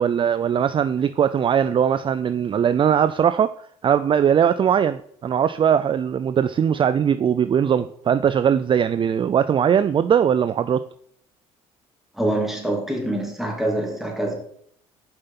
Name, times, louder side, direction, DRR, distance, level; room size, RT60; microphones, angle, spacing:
voice 1, 0.0-3.5 3.8-10.9, right 8 dB, 35° right, 0.4 m, -20 dB
voice 2, 12.1-14.3, right 1 dB, ahead, 2.9 m, -25 dB
6.8 x 5.4 x 5.8 m
hypercardioid pair, 65°, 15 cm